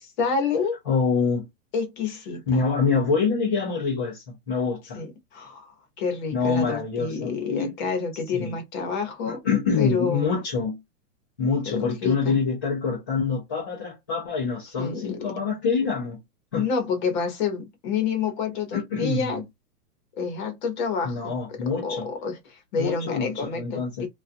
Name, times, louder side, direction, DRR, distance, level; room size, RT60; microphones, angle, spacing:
voice 1, 0.2-0.8 1.7-2.7 4.9-5.7 6.0-9.4 9.8-10.3 11.7-11.8 12.0-12.4 14.8-15.2 16.5-19.4 20.2-21.3 21.8-24.1, left 5 dB, 30° left, 0.9 m, -28 dB
voice 2, 0.9-1.5 2.5-5.0 6.3-7.7 8.3-8.6 9.3-10.8 11.4-16.2 16.5-16.7 18.7-19.4 21.0-22.1 22.8-24.1, left 5 dB, 15° left, 0.4 m, -26 dB
2.4 x 2.3 x 2.5 m
hypercardioid pair, 160°, 48 cm